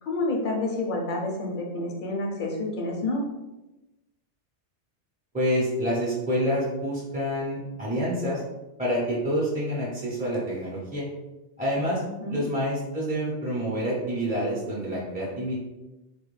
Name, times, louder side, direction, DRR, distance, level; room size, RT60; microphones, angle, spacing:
voice 1, 0.0-3.3 12.2-12.5, left 2 dB, 60° left, 0 dB, 0.6 m, -29 dB
voice 2, 5.3-8.4 8.8-11.1 11.6-12.0 12.3-15.5, equal, 10° right, -7 dB, 0.4 m, -27 dB
2.4 x 2.2 x 3.1 m, 1.0 s
omnidirectional pair, 1.2 m